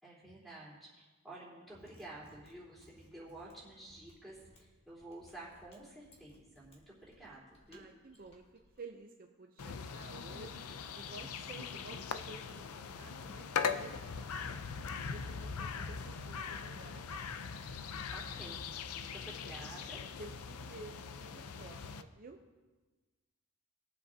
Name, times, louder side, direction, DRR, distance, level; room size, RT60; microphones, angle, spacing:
voice 1, 0.0-7.8 18.1-18.6 18.9-20.0, right 2 dB, ahead, -7 dB, 3.7 m, -51 dB
Mechanisms, 1.6-8.8, equal, 25° left, 1.7 m, -64 dB
voice 2, 7.7-8.4 8.8-10.7 10.9-14.0 14.4-17.0 20.2-22.4, right 3 dB, 40° right, 3 dB, 0.6 m, -52 dB
sound 1, 9.6-22.0, left 6 dB, 75° left, 0.5 m, -41 dB
21.0 x 7.7 x 2.8 m, 1.3 s
head